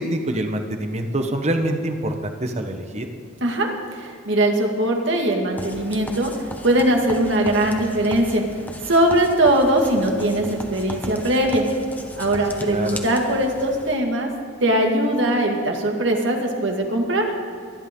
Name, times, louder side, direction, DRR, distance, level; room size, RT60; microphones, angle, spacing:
voice 1, 0.0-3.1 12.7-13.0, right 1 dB, 35° right, 6 dB, 1.2 m, -25 dB
voice 2, 3.4-6.3 6.6-8.4 8.9-11.6 12.1-14.3 14.6-17.3, right 1 dB, 65° right, 2 dB, 2.1 m, -20 dB
sound 1, 5.6-14.0, left 1 dB, 10° left, 1.1 m, -36 dB
24.0 x 11.0 x 3.8 m, 2.5 s
head